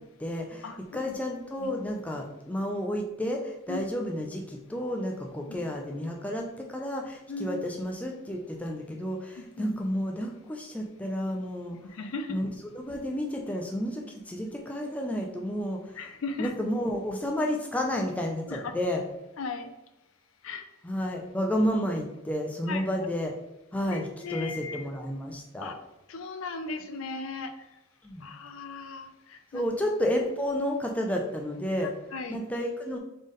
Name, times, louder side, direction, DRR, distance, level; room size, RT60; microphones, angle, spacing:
voice 1, 0.2-11.8 12.3-12.5 12.9-16.1 16.4-19.0 20.8-23.3 23.7-25.8 28.0-28.3 29.5-31.9 32.3-33.0, equal, 5° left, 1 dB, 0.4 m, -31 dB
voice 2, 7.3-7.6 9.4-9.7 11.9-12.4 16.0-16.5 18.5-18.7 19.4-19.7 20.4-20.7 22.7-22.9 23.9-24.9 25.6-25.7 26.1-27.5 28.2-29.7 32.1-32.4, left 3 dB, 65° left, 7 dB, 0.4 m, -37 dB
3.9 x 3.6 x 3.5 m, 0.93 s
head